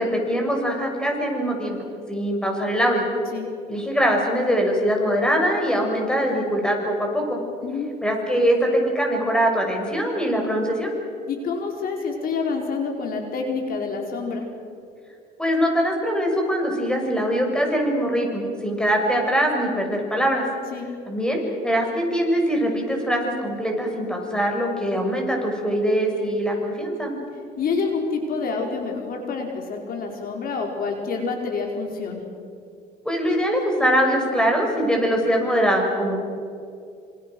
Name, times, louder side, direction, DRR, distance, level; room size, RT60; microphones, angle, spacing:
voice 1, 0.0-3.1 3.7-7.4 8.0-10.9 15.4-20.4 21.1-27.1 33.0-36.2, equal, 5° left, 1 dB, 6.5 m, -22 dB
voice 2, 7.6-7.9 11.3-14.5 20.7-20.9 27.6-32.3, left 4 dB, 60° left, 2 dB, 4.5 m, -27 dB
27.5 x 27.0 x 6.2 m, 2.4 s
cardioid pair, 110°, 17 cm